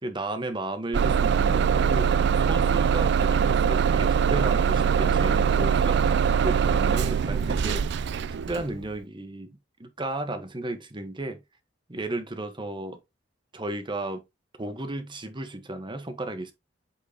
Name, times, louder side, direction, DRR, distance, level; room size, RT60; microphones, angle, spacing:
voice 1, 0.0-8.0 8.5-11.4 11.9-13.0 13.5-14.2 14.6-16.5, right 2 dB, 25° right, 1.2 m, -34 dB
Bus / Engine starting, 0.9-8.7, right 7 dB, 65° right, 0.4 m, -22 dB
8.6 x 4.5 x 2.8 m
head